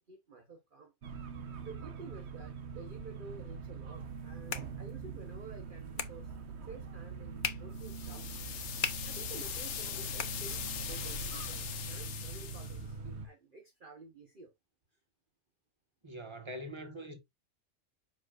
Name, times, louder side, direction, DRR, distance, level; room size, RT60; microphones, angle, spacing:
voice 1, 0.1-0.9 1.6-6.3 6.7-8.2 9.0-14.5, right 4 dB, 45° right, 1.2 m, -51 dB
sound 1, 1.0-13.3, right 4 dB, 60° right, 1.2 m, -43 dB
sound 2, 4.0-11.0, left 6 dB, 45° left, 0.9 m, -43 dB
sound 3, 7.8-12.8, left 9 dB, 85° left, 1.2 m, -41 dB
voice 2, 16.0-17.2, equal, 20° right, 1.7 m, -43 dB
7.4 x 5.9 x 2.5 m
omnidirectional pair, 1.3 m